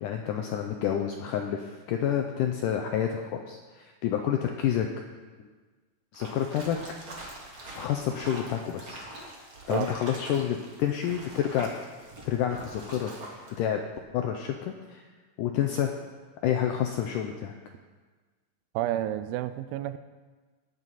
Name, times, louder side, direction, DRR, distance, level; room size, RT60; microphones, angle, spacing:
voice 1, 0.0-4.9 6.1-6.8 7.8-9.0 9.7-11.7 12.3-13.1 13.6-13.8 14.1-15.0 15.4-15.9 16.4-17.5, left 9 dB, 85° left, 4 dB, 1.9 m, -29 dB
sound 1, 6.1-13.6, right 1 dB, 55° right, 0.9 m, -44 dB
voice 2, 18.8-20.0, right 13 dB, 85° right, 12 dB, 2.3 m, -30 dB
18.5 x 7.6 x 4.1 m, 1.4 s
omnidirectional pair, 4.4 m